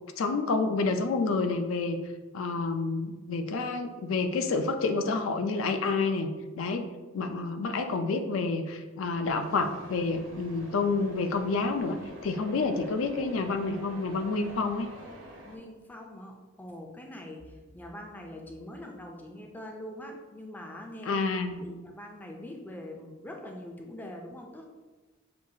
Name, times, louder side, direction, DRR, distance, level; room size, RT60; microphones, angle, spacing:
voice 1, 0.2-2.0 2.3-6.3 6.6-6.9 7.1-14.9 21.1-21.6, left 3 dB, 75° left, 7 dB, 0.4 m, -29 dB
sound 1, 9.4-15.6, equal, 80° right, 0.9 m, -47 dB
voice 2, 15.4-21.2 21.6-24.6, left 1 dB, 10° left, 1 dB, 0.4 m, -43 dB
6.1 x 2.4 x 2.7 m, 1.2 s
head